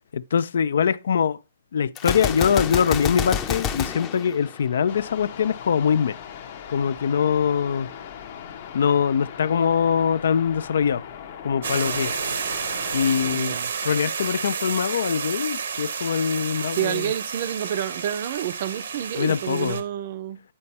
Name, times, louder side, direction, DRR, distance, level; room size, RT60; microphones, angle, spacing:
voice 1, 0.1-1.4 1.7-6.2 6.7-7.9 8.7-11.0 11.4-12.1 12.9-17.1 19.2-19.8, left 7 dB, 70° left, 0.3 m, -23 dB
Gunshot gunfire, 2.0-5.1, left 8 dB, 25° left, 0.6 m, -28 dB
sound 1, 4.9-13.4, left 8 dB, 50° left, 0.9 m, -39 dB
sound 2, 11.6-19.8, right 6 dB, 80° right, 0.8 m, -30 dB
voice 2, 13.3-13.7 16.7-20.4, right 11 dB, 50° right, 0.5 m, -29 dB
8.6 x 4.3 x 4.1 m
hypercardioid pair, 145°, 0 cm